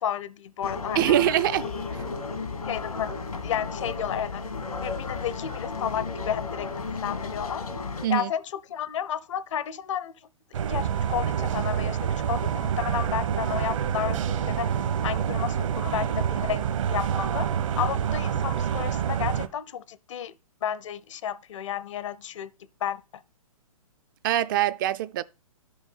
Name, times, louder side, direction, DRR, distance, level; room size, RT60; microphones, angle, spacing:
voice 1, 0.0-1.1 2.7-4.4 4.8-7.6 8.1-10.1 10.7-12.0 12.3-14.7 15.0-17.5 17.8-20.3 20.6-22.5 22.8-23.2, left 9 dB, 55° left, 0.7 m, -32 dB
sound 1, 0.6-8.1, left 4 dB, 85° left, 1.9 m, -34 dB
voice 2, 1.0-1.7 8.0-8.3 24.2-25.2, right 12 dB, 35° right, 0.4 m, -23 dB
sound 2, 10.5-19.5, right 8 dB, 60° right, 1.0 m, -27 dB
10.5 x 5.4 x 5.5 m
hypercardioid pair, 130°, 18 cm